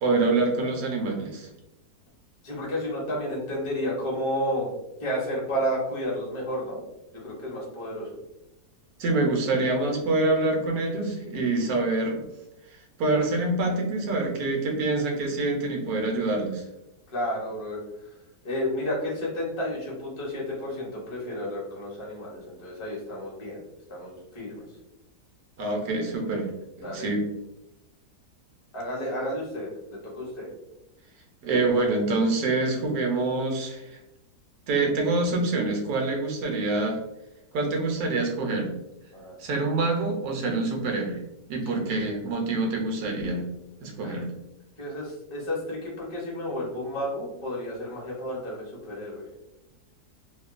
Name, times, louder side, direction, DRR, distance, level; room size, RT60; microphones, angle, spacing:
voice 1, 0.0-1.5 9.0-12.2 12.7-16.6 25.6-26.5 26.8-27.2 31.4-34.0 34.7-37.0 37.5-38.7 39.4-41.2 41.5-43.4 43.8-44.3, right 2 dB, 70° right, 1 dB, 1.0 m, -26 dB
voice 2, 2.4-4.7 5.0-6.8 7.1-8.1 17.1-17.8 18.4-23.6 23.9-24.6 26.8-27.1 28.7-30.5 39.1-39.3 44.0-44.2 44.8-49.2, equal, 30° left, -5 dB, 0.6 m, -31 dB
2.8 x 2.2 x 2.4 m, 0.93 s
omnidirectional pair, 1.7 m